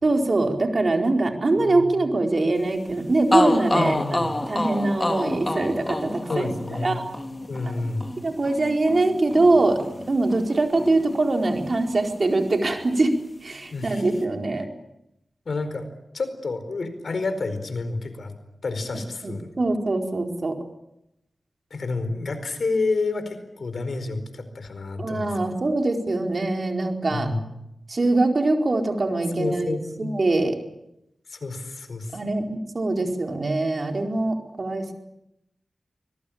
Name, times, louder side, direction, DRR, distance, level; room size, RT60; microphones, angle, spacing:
voice 1, 0.0-6.5 6.8-7.1 7.6-9.8 10.1-13.2 13.4-14.7 19.2-20.6 25.0-27.3 27.9-30.5 32.1-34.9, right 2 dB, 55° right, 4 dB, 4.6 m, -23 dB
sound 1, 2.9-3.0 3.3-11.2 11.4-12.6, left 1 dB, 25° left, 3.4 m, -29 dB
voice 2, 3.7-4.3 6.3-7.0 7.5-8.1 13.7-14.1 15.5-15.9 16.1-18.3 18.6-19.5 21.7-25.6 27.1-27.4 29.4-30.2 31.3-32.2, left 3 dB, 75° left, 10 dB, 4.6 m, -29 dB
25.0 x 22.0 x 8.8 m, 0.83 s
cardioid pair, 60°, 0 cm